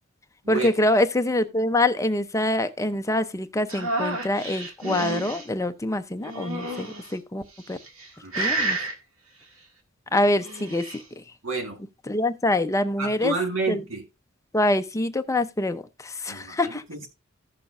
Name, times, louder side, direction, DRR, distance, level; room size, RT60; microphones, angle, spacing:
voice 1, 0.5-7.4 7.7-7.8 8.4-8.8 10.1-11.2 12.1-13.3 13.7-13.8 14.5-16.8, left 1 dB, 15° left, 0.6 m, -25 dB
sound 1, 3.7-5.4 6.2-7.1 7.7-8.1 8.3-8.9 10.3-11.0, right 2 dB, 85° right, 1.9 m, -30 dB
voice 2, 11.4-11.8 13.0-14.0 16.3-17.1, right 4 dB, 70° right, 2.3 m, -30 dB
15.0 x 6.7 x 2.5 m
head